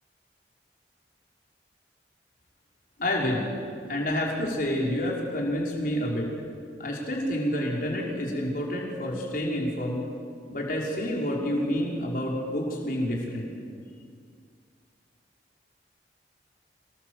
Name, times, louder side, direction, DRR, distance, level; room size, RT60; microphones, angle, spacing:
voice 1, 3.0-3.5 3.9-6.3 6.8-10.0 10.5-13.5, equal, 50° left, -2 dB, 5.3 m, -28 dB
26.5 x 19.0 x 8.2 m, 2.2 s
head